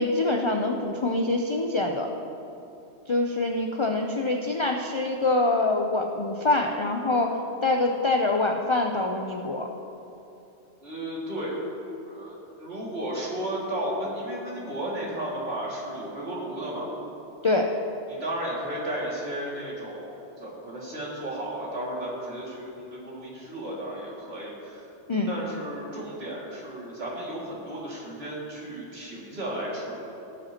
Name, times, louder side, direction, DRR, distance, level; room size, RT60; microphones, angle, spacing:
voice 1, 0.0-2.1 3.1-7.3 7.6-9.7 17.4-17.7 25.1-25.3, left 2 dB, 45° left, 2 dB, 0.4 m, -25 dB
voice 2, 10.8-11.5 12.0-16.9 18.1-24.9 25.3-30.0, right 1 dB, 60° right, -6 dB, 2.5 m, -34 dB
17.5 x 7.9 x 2.9 m, 2.9 s
omnidirectional pair, 1.2 m